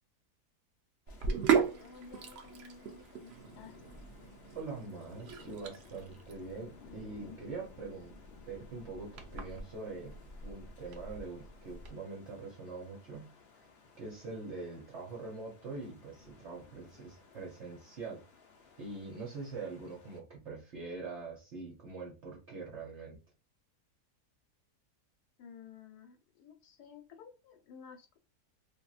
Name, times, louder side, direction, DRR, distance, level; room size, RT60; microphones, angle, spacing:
sound 1, 1.1-20.2, left 5 dB, 60° left, 0.7 m, -58 dB
Sink (filling or washing), 1.1-11.9, right 7 dB, 80° right, 0.5 m, -37 dB
voice 1, 1.8-3.8 25.4-28.2, left 6 dB, 75° left, 4 dB, 1.2 m, -53 dB
voice 2, 4.5-8.2 8.5-13.3 14.0-18.2 18.8-23.2, right 3 dB, 55° right, -1 dB, 0.9 m, -44 dB
2.9 x 2.7 x 2.4 m, 0.30 s
omnidirectional pair, 1.7 m